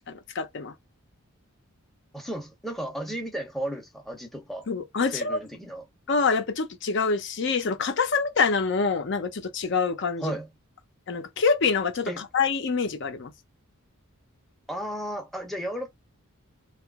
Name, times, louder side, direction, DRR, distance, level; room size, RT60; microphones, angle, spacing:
voice 1, 0.1-0.7 4.7-5.4 6.1-10.3 11.1-13.3, left 5 dB, 55° left, 0.5 m, -26 dB
voice 2, 2.1-4.7 5.1-5.8 10.2-10.5 12.1-12.2 14.7-15.9, right 1 dB, ahead, 0.6 m, -34 dB
2.8 x 2.4 x 3.4 m
head